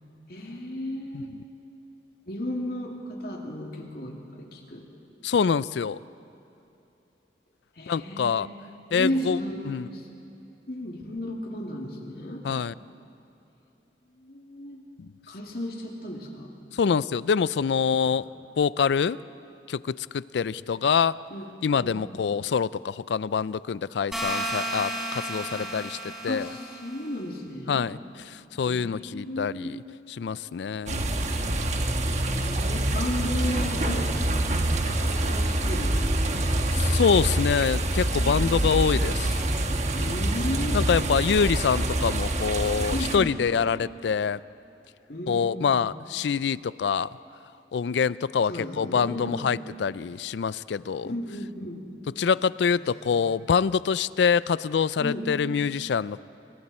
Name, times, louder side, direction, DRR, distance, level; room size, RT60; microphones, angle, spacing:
voice 1, 0.3-1.3 2.3-4.8 7.8-8.5 8.9-10.1 10.7-12.4 14.2-14.8 15.3-16.5 17.9-18.2 21.3-21.5 21.7-22.0 25.5-25.7 26.3-27.8 28.6-29.7 32.3-34.1 34.8-36.2 38.1-38.6 39.9-41.1 42.9-43.4 45.1-45.8 48.5-49.4 51.0-51.8 52.8-53.2 55.0-55.3, left 1 dB, 55° left, 0 dB, 2.7 m, -34 dB
voice 2, 5.2-6.0 7.9-8.5 8.9-9.4 9.7-9.9 12.4-12.7 16.7-18.2 18.6-19.2 19.7-21.2 21.6-26.0 26.2-26.5 27.7-28.0 28.3-29.8 30.1-31.0 36.7-39.4 40.7-44.4 45.3-47.1 47.7-51.1 52.2-56.2, left 6 dB, 75° left, 18 dB, 0.4 m, -25 dB
sound 1, 24.1-27.0, right 1 dB, ahead, 3.4 m, -33 dB
sound 2, 30.9-43.2, right 1 dB, 40° right, 1.2 m, -26 dB
29.5 x 23.0 x 4.3 m, 2.9 s
head